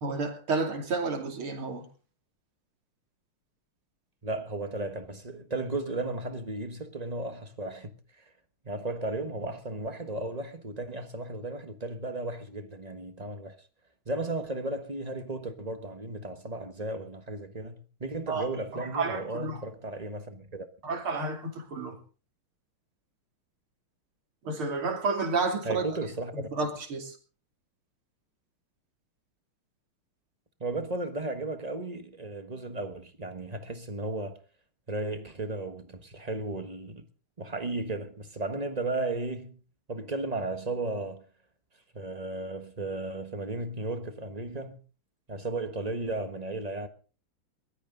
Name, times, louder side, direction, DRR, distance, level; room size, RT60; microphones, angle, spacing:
voice 1, 0.0-1.9 18.3-18.5 18.7-19.6 20.8-22.0 24.4-25.9 26.3-27.2, right 3 dB, 70° right, 3.7 m, -31 dB
voice 2, 4.2-8.2 8.6-13.6 14.1-20.7 25.6-26.5 30.6-34.4 34.9-37.0 37.4-39.6 39.9-41.2 41.9-44.8 45.3-46.9, right 2 dB, 25° right, 1.1 m, -35 dB
21.5 x 13.5 x 3.9 m
omnidirectional pair, 2.4 m